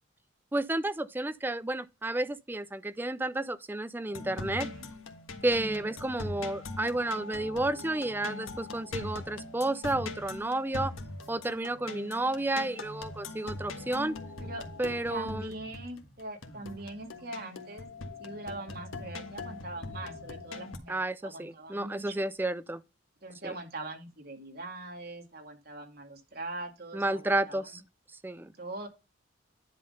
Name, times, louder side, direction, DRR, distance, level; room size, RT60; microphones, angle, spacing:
voice 1, 0.5-4.7 5.4-10.9 11.3-14.1 14.8-15.5 20.9-22.8 23.4-23.5 26.9-27.8 28.2-28.5, right 2 dB, 10° right, 0.4 m, -31 dB
sound 1, 4.1-20.8, left 2 dB, 90° left, 1.5 m, -41 dB
voice 2, 5.6-5.9 14.4-14.7 15.1-17.9 18.2-22.1 23.2-27.8 28.6-28.9, right 2 dB, 50° right, 2.2 m, -42 dB
10.5 x 3.8 x 5.4 m
head